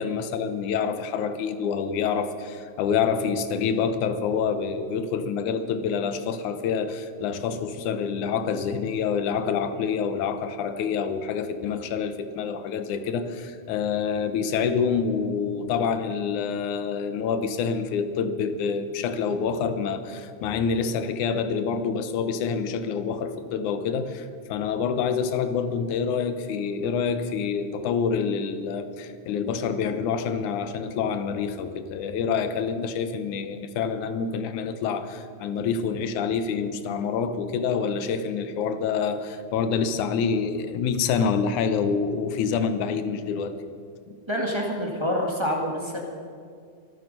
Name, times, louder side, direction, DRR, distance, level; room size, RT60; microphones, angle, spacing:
voice 1, 0.0-43.6 44.1-44.2, left 6 dB, 85° left, 10 dB, 2.4 m, -27 dB
voice 2, 44.3-46.0, equal, 15° right, -1 dB, 1.1 m, -27 dB
24.5 x 9.2 x 5.4 m, 2.2 s
omnidirectional pair, 3.4 m